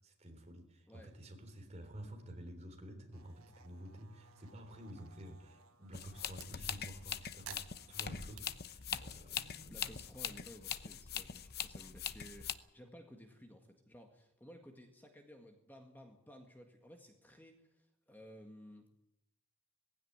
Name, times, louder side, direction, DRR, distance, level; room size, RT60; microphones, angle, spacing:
voice 1, 0.0-9.9, right 1 dB, 30° right, 5 dB, 3.6 m, -51 dB
sound 1, 3.1-6.5 7.4-8.4, right 8 dB, 80° right, 1.3 m, -56 dB
sound 2, 5.9-12.5, left 8 dB, 45° left, 0.9 m, -42 dB
voice 2, 9.7-18.9, equal, 10° left, 3 dB, 1.8 m, -56 dB
18.5 x 16.0 x 9.6 m, 0.83 s
head